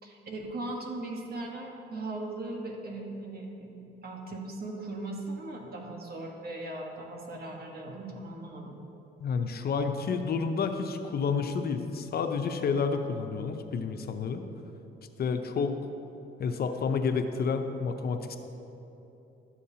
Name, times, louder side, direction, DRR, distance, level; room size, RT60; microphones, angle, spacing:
voice 1, 0.0-8.8, right 2 dB, 50° right, 1 dB, 1.3 m, -38 dB
voice 2, 9.2-14.4 15.2-15.8 16.4-18.4, left 5 dB, 50° left, 7 dB, 0.6 m, -30 dB
12.0 x 7.1 x 2.8 m, 3.0 s
cardioid pair, 90°, 20 cm